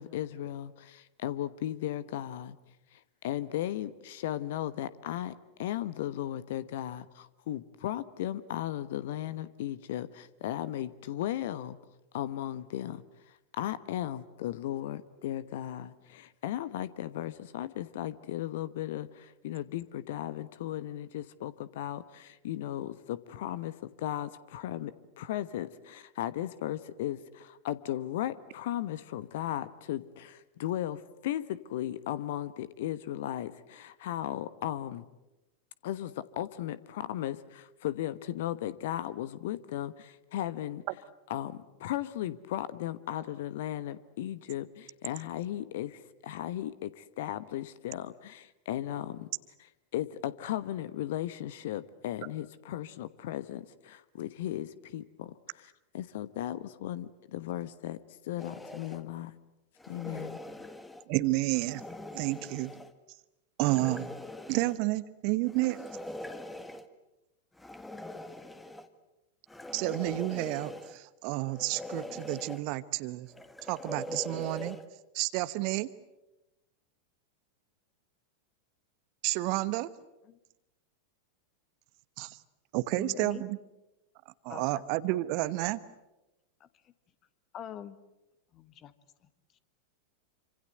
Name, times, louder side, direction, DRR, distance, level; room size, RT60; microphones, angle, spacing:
voice 1, 0.0-2.6 2.9-5.3 5.6-11.8 12.1-35.0 35.8-40.8 41.3-49.3 49.9-58.0 58.2-59.3 59.9-60.4, left 12 dB, 55° left, 16 dB, 1.1 m, -36 dB
sound 1, 58.4-59.0 59.8-61.0 61.5-62.9 63.6-64.8 65.5-66.9 67.6-68.9 69.5-71.0 71.5-72.6 73.3-74.9, left 1 dB, 5° left, 1.7 m, -42 dB
voice 2, 61.1-61.8 62.1-62.7 63.6-64.1 64.5-65.8 69.7-73.3 73.6-74.8 75.1-75.9 79.2-79.9 82.2-82.4 82.7-83.6 84.4-85.8, right 19 dB, 45° right, 15 dB, 1.1 m, -30 dB
voice 3, 83.0-83.4 84.5-84.8 86.6-86.7 87.5-88.0 88.5-88.9, left 9 dB, 30° left, 13 dB, 1.5 m, -43 dB
27.5 x 26.0 x 7.9 m, 0.97 s
figure-of-eight pair, 90°, 0 cm